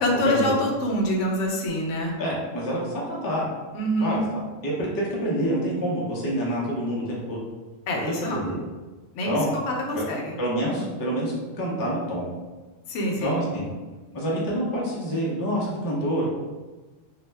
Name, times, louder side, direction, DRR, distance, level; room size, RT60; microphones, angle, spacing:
voice 1, 0.0-2.2 3.7-4.2 7.9-8.4 9.1-9.3 9.7-10.4 12.9-13.4, equal, 70° left, 0 dB, 0.9 m, -25 dB
voice 2, 2.2-3.5 4.0-7.4 8.3-8.6 9.3-9.5 9.9-10.0 10.4-12.2 13.2-13.6 14.1-16.3, equal, 35° left, -4 dB, 0.3 m, -27 dB
2.6 x 2.1 x 3.2 m, 1.2 s
omnidirectional pair, 1.3 m